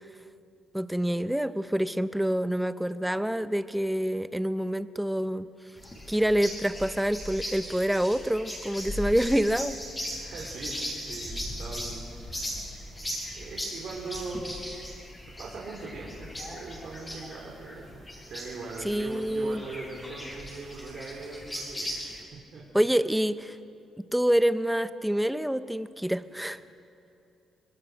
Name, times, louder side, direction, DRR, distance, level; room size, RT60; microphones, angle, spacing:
voice 1, 0.7-5.5 6.1-9.8 18.8-19.6 22.7-23.6 24.1-26.6, equal, 5° right, 12 dB, 0.8 m, -27 dB
sound 1, 5.8-22.2, equal, 15° left, 6.6 m, -38 dB
voice 2, 10.2-10.8 11.0-12.6 13.3-14.4 15.4-18.0 18.3-21.9 22.3-22.6, right 3 dB, 60° right, -3 dB, 3.7 m, -40 dB
25.5 x 20.5 x 6.6 m, 2.7 s
cardioid pair, 90°, 0 cm